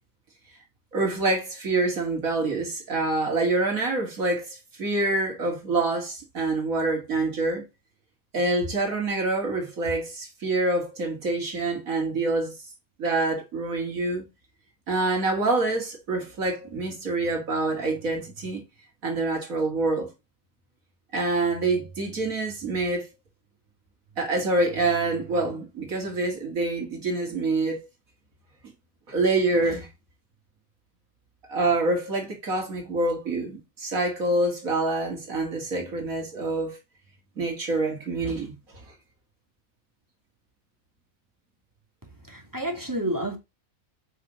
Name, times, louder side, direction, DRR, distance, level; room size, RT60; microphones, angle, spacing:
voice 1, 0.9-7.6 8.3-12.6 13.0-14.2 14.9-18.6 19.0-20.1 21.1-23.1 24.2-27.9 29.1-29.9 31.5-36.8 37.4-38.6 38.8-38.9, right 2 dB, 70° right, 2.6 m, -26 dB
voice 2, 42.3-43.4, right 1 dB, 15° right, 2.5 m, -29 dB
8.0 x 5.9 x 3.9 m
omnidirectional pair, 1.5 m